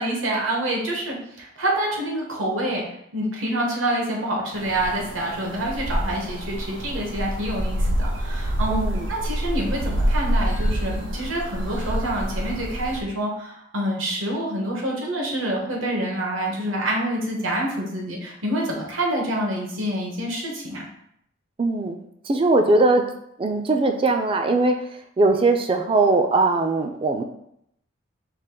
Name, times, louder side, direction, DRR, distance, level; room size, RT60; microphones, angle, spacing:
voice 1, 0.0-2.8 3.1-20.9, right 1 dB, 80° right, -1 dB, 1.1 m, -27 dB
sound 1, 4.5-13.0, equal, 65° right, 0.7 m, -26 dB
voice 2, 8.7-9.1 21.6-23.0 23.4-24.8 25.2-27.2, right 2 dB, 25° right, 5 dB, 0.4 m, -20 dB
4.9 x 2.5 x 3.7 m, 0.74 s
head